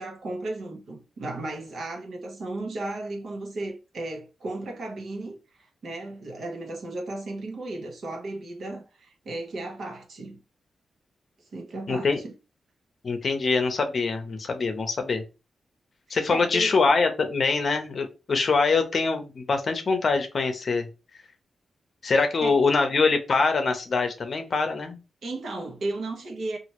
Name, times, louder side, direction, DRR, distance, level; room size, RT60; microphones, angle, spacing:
voice 1, 0.0-10.4 11.5-12.3 16.1-16.8 22.4-22.6 25.2-26.6, right 2 dB, 70° right, 0.9 m, -35 dB
voice 2, 11.9-12.2 13.0-15.2 16.1-20.9 22.0-25.0, left 4 dB, 50° left, 0.6 m, -24 dB
3.0 x 2.5 x 2.9 m
cardioid pair, 90°, 0 cm